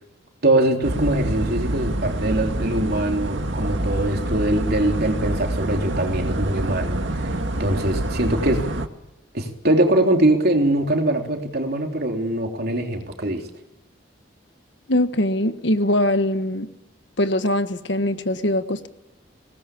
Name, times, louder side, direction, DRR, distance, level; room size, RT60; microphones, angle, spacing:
voice 1, 0.4-7.3 7.6-8.6 9.3-13.4, right 1 dB, 55° right, 3.6 m, -22 dB
sound 1, 0.8-8.9, right 1 dB, 75° right, 1.9 m, -26 dB
voice 2, 14.9-16.7 17.2-18.9, left 1 dB, 65° left, 1.5 m, -22 dB
22.5 x 19.5 x 8.6 m
head